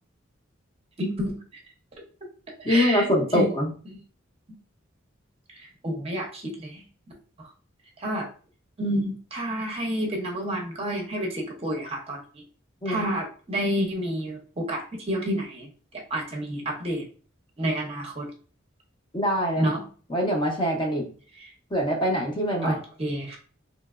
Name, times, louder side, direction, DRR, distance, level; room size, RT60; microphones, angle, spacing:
voice 1, 1.0-1.4 2.6-3.1 3.3-3.5 5.5-6.8 7.4-7.5 8.0-8.3 8.8-12.4 12.8-17.1 17.6-18.3 19.6-19.8 21.4-21.5 22.6-23.4, equal, 30° right, 1 dB, 0.6 m, -29 dB
voice 2, 2.6-3.7 12.8-13.1 19.1-19.7 20.1-21.0 21.7-22.8, equal, 25° left, 0 dB, 0.6 m, -24 dB
3.1 x 2.9 x 2.4 m, 0.40 s
head